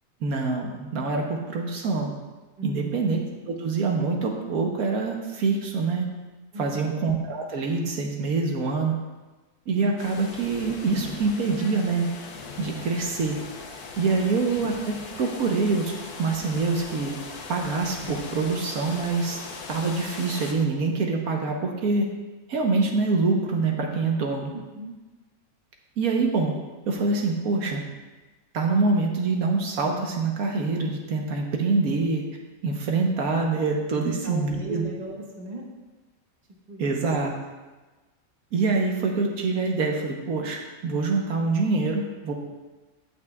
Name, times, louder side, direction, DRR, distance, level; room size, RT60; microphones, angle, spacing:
voice 1, 0.2-2.1 2.6-3.2 3.5-6.0 6.6-9.0 9.7-12.1 12.6-13.4 14.0-15.9 16.2-17.1 17.5-19.4 19.7-22.1 22.5-24.5 26.0-26.5 26.9-27.8 28.5-32.2 32.6-34.8 36.8-37.3 38.5-42.3, right 4 dB, 75° right, 1 dB, 1.4 m, -25 dB
voice 2, 2.6-3.0 6.5-6.9 14.1-14.3 24.5-24.9 33.9-35.6 36.7-36.9, right 2 dB, 30° right, -1 dB, 1.3 m, -37 dB
sound 1, 10.0-20.5, left 4 dB, 90° left, 1.4 m, -40 dB
17.0 x 6.0 x 2.3 m, 1.2 s
omnidirectional pair, 1.6 m